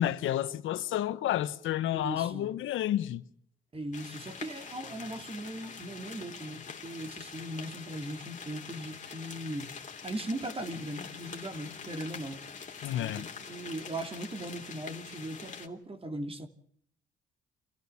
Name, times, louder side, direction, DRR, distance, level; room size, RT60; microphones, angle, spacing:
voice 1, 0.0-3.2 12.8-13.3, left 12 dB, 85° left, 1.2 m, -30 dB
voice 2, 1.9-2.5 3.7-9.7 10.0-12.4 13.0-16.5, right 1 dB, 30° right, 3.0 m, -39 dB
sound 1, 3.9-15.7, left 6 dB, 40° left, 3.3 m, -45 dB
27.5 x 15.0 x 7.1 m
cardioid pair, 90°, 20 cm